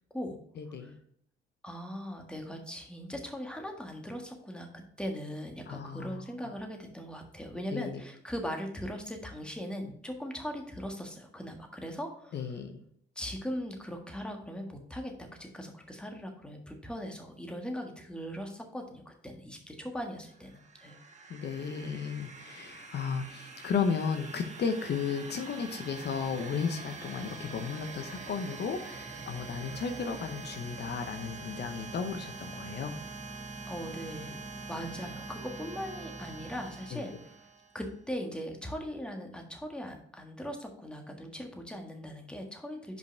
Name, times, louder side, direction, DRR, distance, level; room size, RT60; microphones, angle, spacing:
voice 1, 0.6-0.9 5.7-6.2 7.7-8.0 12.3-12.8 21.3-32.9 36.9-37.0, left 6 dB, 55° left, 6 dB, 0.8 m, -34 dB
voice 2, 1.6-12.4 13.1-21.0 33.7-34.4 34.7-37.3 37.7-43.0, equal, 5° left, 3 dB, 1.5 m, -39 dB
sound 1, 20.3-37.9, right 3 dB, 35° right, 1.3 m, -44 dB
5.3 x 5.3 x 4.5 m, 0.67 s
cardioid pair, 90°, 20 cm